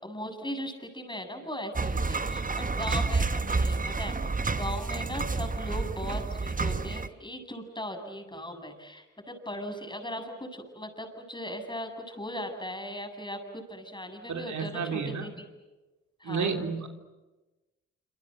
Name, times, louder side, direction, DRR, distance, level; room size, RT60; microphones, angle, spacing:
voice 1, 0.0-4.2 4.6-15.3 16.2-16.5, equal, 15° left, 6 dB, 7.6 m, -38 dB
sound 1, 1.8-7.1, right 3 dB, 25° right, 1.1 m, -29 dB
voice 2, 14.3-15.3 16.2-16.9, right 5 dB, 65° right, 5 dB, 3.4 m, -31 dB
27.0 x 26.5 x 7.9 m, 1.1 s
supercardioid pair, 45°, 31 cm